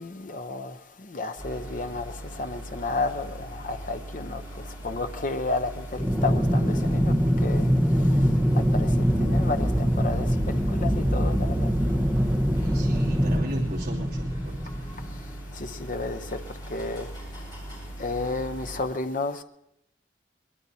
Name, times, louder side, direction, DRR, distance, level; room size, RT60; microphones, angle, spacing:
voice 1, 0.0-7.1 7.4-7.7 8.0-8.3 8.5-11.7 15.5-16.4 16.7-17.1 18.0-19.4, left 3 dB, 40° left, 0.7 m, -32 dB
sound 1, 1.4-18.8, right 1 dB, 20° left, 5.9 m, -40 dB
Aircraft, 6.0-15.4, equal, 5° right, 1.0 m, -23 dB
voice 2, 12.6-14.6, right 1 dB, 50° right, 2.9 m, -37 dB
22.5 x 20.5 x 2.8 m
head